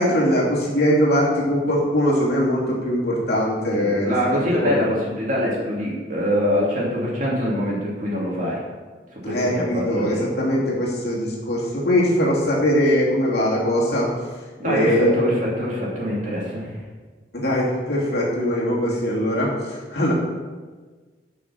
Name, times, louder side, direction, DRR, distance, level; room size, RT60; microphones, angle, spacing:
voice 1, 0.0-4.1 4.5-4.8 9.2-14.1 14.6-15.3 17.3-20.1, equal, 60° left, -4 dB, 2.8 m, -21 dB
voice 2, 3.7-8.6 9.1-10.2 14.6-16.8, equal, 45° right, -4 dB, 2.8 m, -24 dB
10.5 x 6.1 x 5.8 m, 1.4 s
head